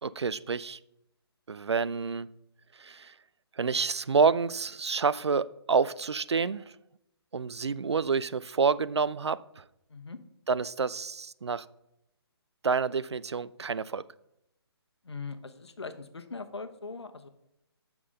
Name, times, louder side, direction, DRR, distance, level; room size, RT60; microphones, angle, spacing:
voice 1, 0.0-0.8 1.5-2.3 2.8-3.1 3.6-6.6 7.3-9.6 10.5-11.6 12.6-14.0, right 5 dB, 80° right, 17 dB, 0.5 m, -28 dB
voice 2, 15.0-17.3, left 4 dB, 80° left, 9 dB, 1.1 m, -40 dB
8.5 x 6.0 x 5.3 m, 0.84 s
figure-of-eight pair, 140°, 14 cm